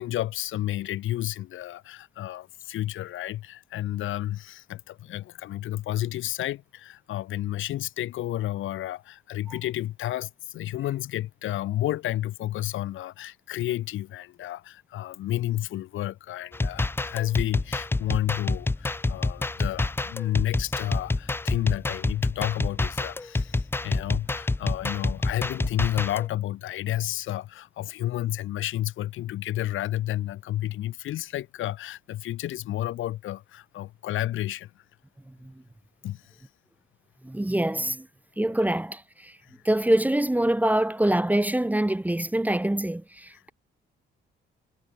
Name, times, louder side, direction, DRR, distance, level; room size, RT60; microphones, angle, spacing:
voice 1, 0.0-34.7 36.0-36.4 39.4-39.5 43.3-43.4, left 14 dB, 85° left, 4.8 m, -31 dB
sound 1, 16.5-26.3, left 2 dB, 10° left, 0.5 m, -27 dB
voice 2, 37.2-38.1 38.4-39.3 39.6-43.5, right 1 dB, 10° right, 1.5 m, -25 dB
cardioid pair, 90°, 20 cm